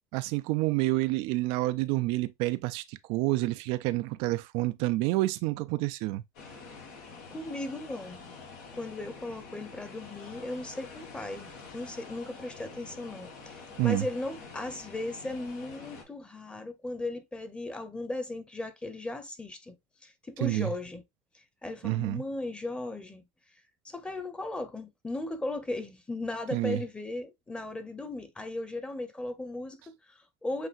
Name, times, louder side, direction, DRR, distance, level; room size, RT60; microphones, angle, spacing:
voice 1, 0.1-6.2 13.8-14.1 20.4-20.7 21.8-22.2 26.5-26.8, right 19 dB, 70° right, 0.4 m, -28 dB
sound 1, 6.3-16.0, left 4 dB, 80° left, 2.1 m, -47 dB
voice 2, 7.3-8.2 8.7-19.8 20.0-21.0 21.6-23.2 23.8-30.7, left 2 dB, 10° left, 1.0 m, -37 dB
7.7 x 2.6 x 2.5 m
supercardioid pair, 115°, 9 cm